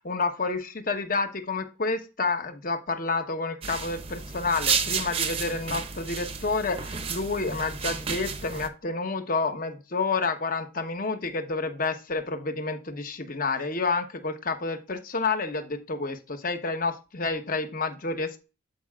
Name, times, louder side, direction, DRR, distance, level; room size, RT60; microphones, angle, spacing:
voice 1, 0.0-18.4, left 3 dB, 40° left, 7 dB, 0.9 m, -29 dB
sound 1, 3.6-8.7, right 6 dB, 30° right, 0.6 m, -31 dB
11.5 x 4.8 x 2.4 m, 0.30 s
head